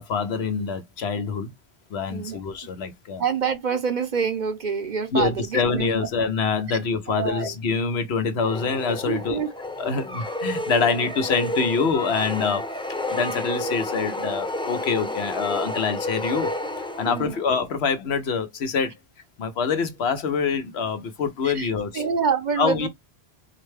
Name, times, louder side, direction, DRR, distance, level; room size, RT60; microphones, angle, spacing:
voice 1, 0.0-1.5 1.9-3.2 5.1-9.4 9.8-12.7 13.1-16.5 17.0-18.9 19.4-21.9 22.6-22.9, left 5 dB, 80° left, 1.1 m, -25 dB
voice 2, 2.1-2.4 3.2-6.1 7.1-7.5 9.0-9.5 17.0-17.5 21.4-22.9, right 6 dB, 50° right, 0.8 m, -27 dB
sound 1, 8.4-17.5, left 1 dB, 10° left, 0.3 m, -30 dB
4.6 x 2.1 x 3.2 m
omnidirectional pair, 1.1 m